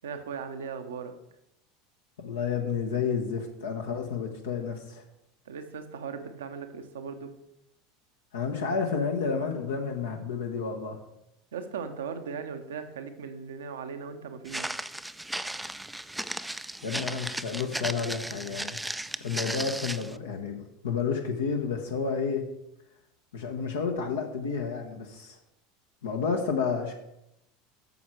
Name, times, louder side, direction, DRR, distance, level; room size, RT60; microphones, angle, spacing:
voice 1, 0.0-1.1 5.5-7.3 11.5-14.9, right 6 dB, 75° right, 8 dB, 0.9 m, -38 dB
voice 2, 2.2-5.0 8.3-11.0 16.8-18.8 19.2-22.5 23.3-25.4 26.0-26.9, left 5 dB, 75° left, 2 dB, 1.0 m, -30 dB
Walk footsteps, 14.5-20.1, right 1 dB, 5° right, 0.4 m, -35 dB
9.2 x 6.4 x 4.7 m, 0.84 s
figure-of-eight pair, 75°, 0 cm